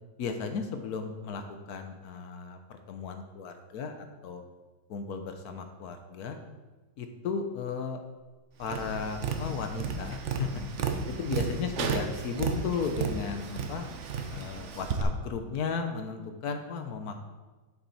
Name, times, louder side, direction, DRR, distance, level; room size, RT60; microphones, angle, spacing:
voice 1, 0.2-4.4 4.9-6.4 7.0-8.0 8.6-10.5 10.8-13.9 14.3-17.2, left 5 dB, 60° left, 6 dB, 1.2 m, -35 dB
Tap, 8.6-15.0, right 5 dB, 65° right, 0.7 m, -33 dB
7.4 x 7.2 x 4.1 m, 1.2 s
omnidirectional pair, 2.1 m